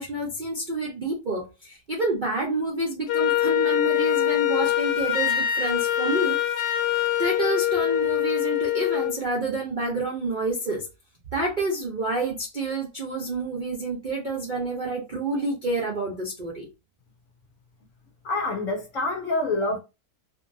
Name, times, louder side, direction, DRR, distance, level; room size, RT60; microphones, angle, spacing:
voice 1, 0.0-6.8 7.2-10.9 11.3-16.7, right 2 dB, 55° right, 0.5 m, -28 dB
Wind instrument woodwind instrument, 3.1-9.2, left 12 dB, 90° left, 1.2 m, -24 dB
voice 2, 18.2-19.8, left 2 dB, 65° left, 0.9 m, -26 dB
2.8 x 2.5 x 2.6 m
omnidirectional pair, 1.8 m